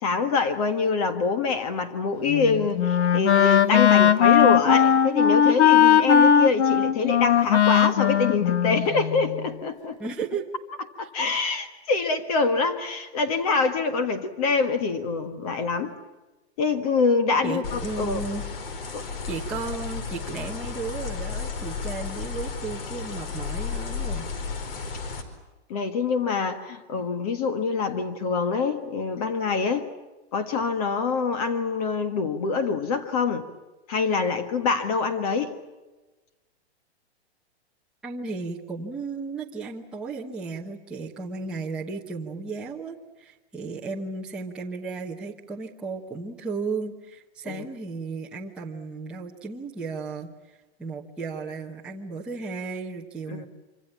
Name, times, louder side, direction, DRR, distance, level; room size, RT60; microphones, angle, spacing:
voice 1, 0.0-10.0 11.0-15.9 16.6-18.2 18.9-19.0 25.7-29.9 30.3-33.5 33.9-35.5 47.4-47.6 53.3-53.5, left 4 dB, 35° left, 9 dB, 1.6 m, -25 dB
Wind instrument woodwind instrument, 2.3-9.4, left 8 dB, 85° left, 1.5 m, -19 dB
voice 2, 10.0-10.5 17.4-18.4 19.3-24.3 38.0-50.3 50.8-53.4, right 4 dB, 5° right, -4 dB, 1.0 m, -34 dB
sound 1, 17.6-25.2, left 5 dB, 55° left, 4.8 m, -33 dB
26.0 x 25.5 x 7.3 m, 1.1 s
hypercardioid pair, 175°, 33 cm